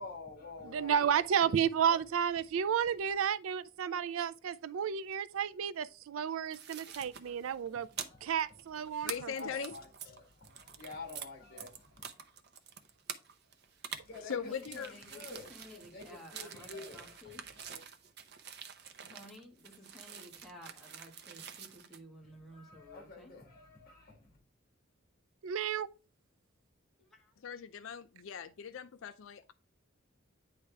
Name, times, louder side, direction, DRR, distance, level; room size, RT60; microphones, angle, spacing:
voice 1, 0.0-2.0 2.8-3.2 6.8-8.4 8.8-12.1 13.9-17.8 22.2-24.4, left 3 dB, 45° left, 1.9 m, -50 dB
voice 2, 0.6-7.9 8.2-9.3 25.4-25.9, right 8 dB, 80° right, 0.4 m, -32 dB
sound 1, 6.5-11.3 11.6-22.0, right 8 dB, 55° right, 0.7 m, -47 dB
voice 3, 9.0-9.7 14.3-14.9 27.4-29.5, left 7 dB, 70° left, 0.4 m, -40 dB
voice 4, 14.4-17.4 19.1-23.3 27.0-27.4, left 1 dB, ahead, 1.6 m, -54 dB
9.5 x 3.3 x 3.4 m
head